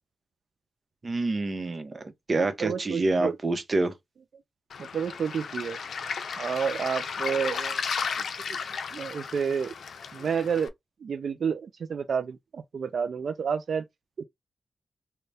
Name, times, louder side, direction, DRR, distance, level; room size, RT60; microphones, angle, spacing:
voice 1, 1.0-3.9, right 2 dB, 40° right, 0.8 m, -27 dB
voice 2, 2.4-3.4 4.8-5.8 6.4-7.8 8.5-8.6 8.9-9.7 10.1-10.7 11.0-13.8 14.2-14.3, right 6 dB, 70° right, 0.3 m, -30 dB
Waves surf, 4.7-10.7, left 6 dB, 80° left, 0.5 m, -34 dB
3.4 x 2.2 x 4.0 m
wide cardioid pair, 115°, 0 cm